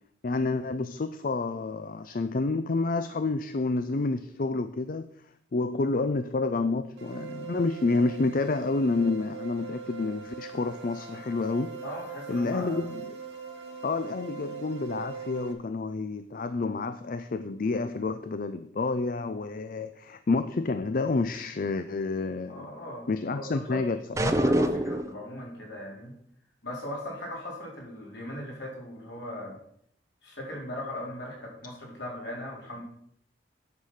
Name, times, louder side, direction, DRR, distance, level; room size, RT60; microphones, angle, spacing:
voice 1, 0.2-5.0 5.5-11.8 12.3-13.2 13.8-22.7 23.1-24.3, left 3 dB, 50° left, 10 dB, 0.5 m, -29 dB
sound 1, 7.0-15.5, right 6 dB, 75° right, 2.0 m, -41 dB
voice 2, 11.8-12.8 22.4-23.8 24.2-26.1 26.6-29.6 30.2-32.8, left 1 dB, 70° left, -2 dB, 3.9 m, -38 dB
sound 2, 24.2-25.2, right 1 dB, 15° right, 0.6 m, -24 dB
9.6 x 6.6 x 5.6 m, 0.69 s
head